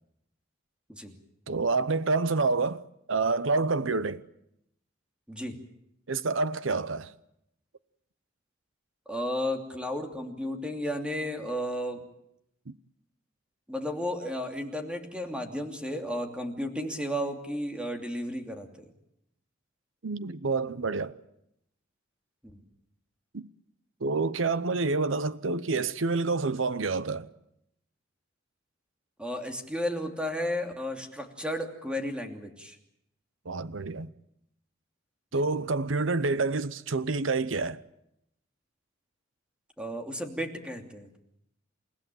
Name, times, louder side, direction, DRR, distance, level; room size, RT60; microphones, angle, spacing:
voice 1, 1.5-4.2 6.1-7.1 12.7-12.8 20.0-21.2 23.3-23.5 24.0-27.3 33.4-34.1 35.3-37.8, right 3 dB, 75° right, 0.8 m, -28 dB
voice 2, 9.1-12.0 13.7-18.8 22.5-22.6 29.2-32.8 39.8-41.1, equal, 5° right, 2.8 m, -33 dB
29.0 x 16.0 x 9.2 m
head